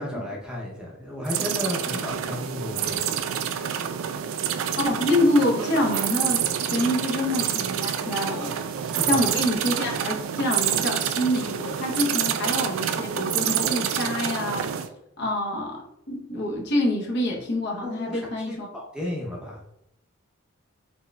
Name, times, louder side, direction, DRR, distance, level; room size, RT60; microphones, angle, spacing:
voice 1, 0.0-3.2 8.8-9.3 17.8-19.6, left 1 dB, 5° right, -4 dB, 0.6 m, -33 dB
sound 1, 1.3-14.9, right 9 dB, 70° right, 0.3 m, -27 dB
voice 2, 4.8-8.5 8.8-14.7 15.2-18.7, left 1 dB, 55° left, -1 dB, 0.8 m, -26 dB
4.3 x 3.5 x 2.2 m, 0.80 s
head